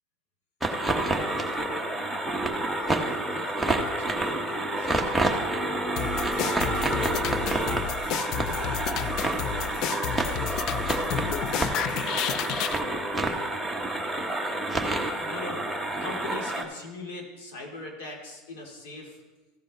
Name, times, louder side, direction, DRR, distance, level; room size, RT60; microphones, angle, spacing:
sound 1, 0.6-16.6, right 1 dB, ahead, 1.0 m, -28 dB
voice 1, 1.0-2.2 2.6-5.5 6.6-7.6 8.3-11.5 12.1-12.7 14.0-15.7 16.0-19.2, left 2 dB, 80° left, 0 dB, 2.7 m, -43 dB
sound 2, 6.0-12.8, left 11 dB, 50° left, 0.3 m, -31 dB
15.0 x 5.2 x 4.2 m, 1.2 s
supercardioid pair, 130°, 0 cm